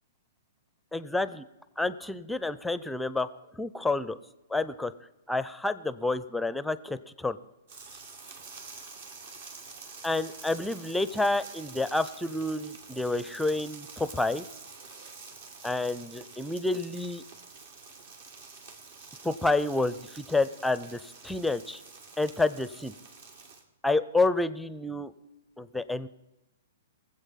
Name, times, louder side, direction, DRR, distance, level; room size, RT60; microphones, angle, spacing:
voice 1, 0.9-1.4 1.8-3.3 3.6-4.2 4.5-4.9 5.3-7.4 10.0-14.4 15.6-17.2 19.2-21.8 22.2-22.9 23.8-25.1 25.6-26.1, left 2 dB, 5° left, 15 dB, 0.6 m, -29 dB
sound 1, 7.7-23.6, right 4 dB, 60° right, 2.4 m, -48 dB
19.5 x 8.0 x 5.8 m, 1.0 s
hypercardioid pair, 120°, 0 cm